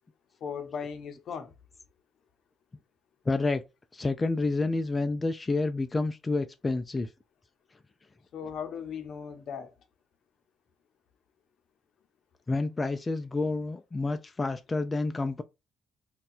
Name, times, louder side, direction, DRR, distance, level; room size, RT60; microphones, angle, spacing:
voice 1, 0.4-1.5 8.3-9.7, left 7 dB, 65° left, 0.6 m, -37 dB
voice 2, 3.3-3.6 3.9-7.1 12.5-15.4, left 3 dB, 25° left, 0.3 m, -29 dB
2.6 x 2.3 x 4.0 m
cardioid pair, 90°, 0 cm